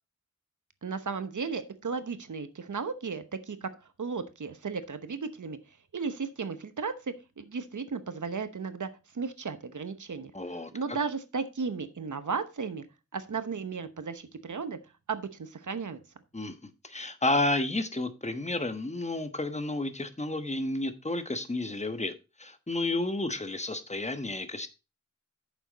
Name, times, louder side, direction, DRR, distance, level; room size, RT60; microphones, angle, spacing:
voice 1, 0.8-3.7 4.0-5.6 5.9-8.9 9.1-10.3 10.7-12.9 13.1-14.8 15.1-16.0, right 5 dB, 90° right, 1.0 m, -35 dB
voice 2, 10.3-10.7 16.3-22.1 22.4-24.7, left 2 dB, 25° left, 1.1 m, -31 dB
9.0 x 7.0 x 4.0 m
wide cardioid pair, 70°, 29 cm